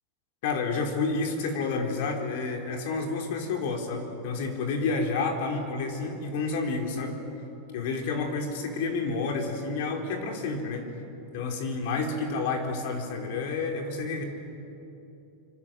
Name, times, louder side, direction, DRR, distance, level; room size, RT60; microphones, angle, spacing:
voice 1, 0.4-7.2 7.7-10.9 11.3-14.2, left 4 dB, 60° left, 3 dB, 4.1 m, -30 dB
26.0 x 26.0 x 7.8 m, 3.0 s
supercardioid pair, 165°, 0 cm